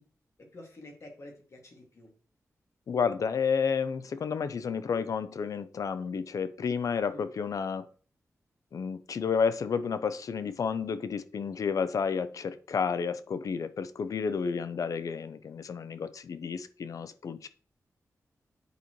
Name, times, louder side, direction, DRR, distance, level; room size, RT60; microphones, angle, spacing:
voice 1, 0.4-2.1 7.1-7.3, left 1 dB, 55° left, 1 dB, 2.1 m, -49 dB
voice 2, 2.9-7.9 8.7-17.5, left 6 dB, 70° left, 13 dB, 0.5 m, -31 dB
9.3 x 4.2 x 3.1 m, 0.41 s
wide cardioid pair, 90°, 6 cm